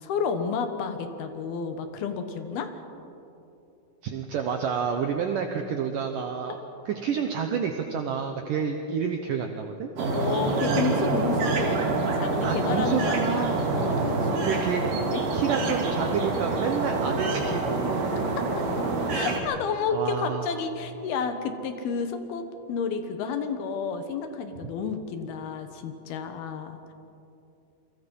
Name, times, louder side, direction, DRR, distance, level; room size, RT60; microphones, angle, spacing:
voice 1, 0.0-2.7 10.1-11.8 12.1-13.5 13.7-15.2 15.6-15.7 18.4-18.5 19.1-26.9, left 5 dB, 65° left, 8 dB, 2.8 m, -31 dB
voice 2, 4.0-6.6 6.9-9.9 12.4-13.7 14.4-14.8 15.3-18.2 19.9-20.5 24.6-24.7, right 7 dB, 90° right, 5 dB, 1.8 m, -29 dB
sound 1, 10.0-19.4, right 3 dB, 50° right, 3.6 m, -26 dB
28.0 x 23.5 x 5.5 m, 2.8 s
omnidirectional pair, 5.4 m